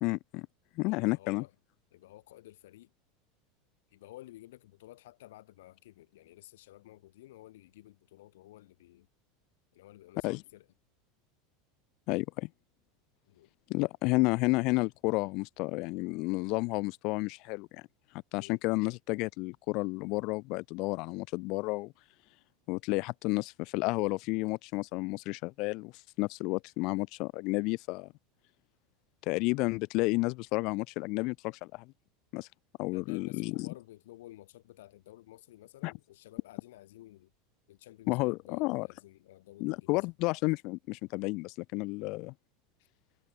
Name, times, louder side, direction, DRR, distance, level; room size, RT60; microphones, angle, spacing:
voice 1, 0.0-0.5 0.8-1.4 10.2-10.4 12.1-12.5 13.7-17.8 18.3-21.9 22.7-28.1 29.2-31.9 32.3-32.5 32.8-33.7 35.8-35.9 38.1-38.9 39.6-42.3, left 25 dB, 40° left, 0.5 m, -31 dB
voice 2, 0.8-1.5 1.9-2.9 3.9-9.1 9.7-10.7 13.3-13.5 18.4-18.6 32.9-37.3 37.7-40.1, left 15 dB, 85° left, 5.2 m, -53 dB
supercardioid pair, 180°, 0 cm